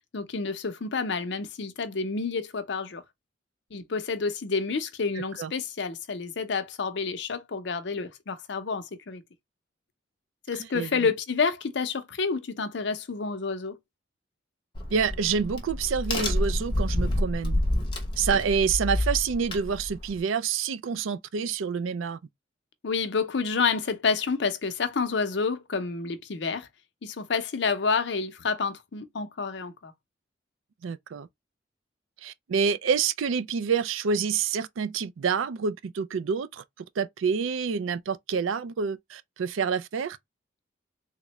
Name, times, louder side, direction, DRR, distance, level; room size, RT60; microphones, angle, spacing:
voice 1, 0.1-3.0 3.7-9.2 10.5-13.8 22.8-26.7 27.0-29.9, left 4 dB, 60° left, 0.6 m, -29 dB
voice 2, 10.7-11.1 14.9-17.6 18.2-22.2 30.8-31.3 32.2-36.6 37.0-40.2, right 6 dB, 90° right, 0.4 m, -27 dB
Crack, 14.8-20.2, left 1 dB, 25° left, 0.8 m, -28 dB
3.6 x 2.1 x 2.9 m
head